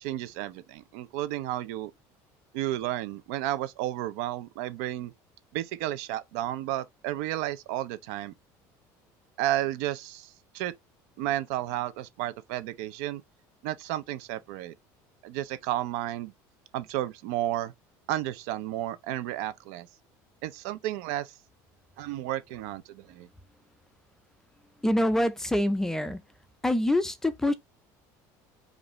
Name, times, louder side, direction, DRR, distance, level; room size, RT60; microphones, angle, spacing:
voice 1, 0.0-1.9 2.5-5.1 5.5-8.3 9.4-10.7 11.2-13.2 13.6-14.7 15.2-16.3 16.7-17.7 18.1-19.9 20.4-21.3 22.0-23.3, right 14 dB, 85° right, 0.6 m, -32 dB
voice 2, 24.8-26.2 26.6-27.5, left 1 dB, 5° left, 0.3 m, -25 dB
5.1 x 2.5 x 3.0 m
cardioid pair, 170°, 8 cm